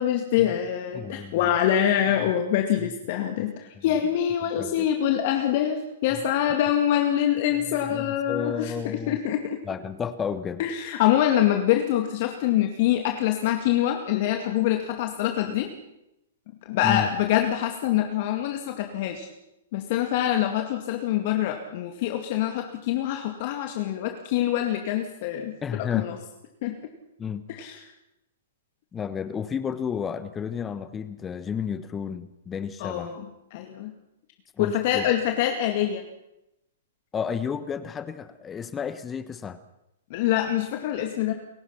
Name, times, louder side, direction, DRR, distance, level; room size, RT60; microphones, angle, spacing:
voice 1, 0.0-9.6 10.6-15.7 16.6-19.3 19.7-26.2 26.6-26.7 27.5-27.8 32.8-33.2 33.5-33.9 34.6-36.1 40.1-41.3, left 11 dB, 50° left, 4 dB, 2.2 m, -25 dB
voice 2, 0.9-1.4 2.2-2.3 2.8-2.9 3.8-3.9 4.6-4.9 6.1-6.2 7.7-9.2 9.6-10.7 16.8-17.1 25.6-26.1 27.2-27.4 28.9-33.1 34.6-35.1 37.1-39.6, left 7 dB, 20° left, 13 dB, 1.1 m, -32 dB
29.0 x 16.5 x 5.8 m, 0.87 s
hypercardioid pair, 115°, 0 cm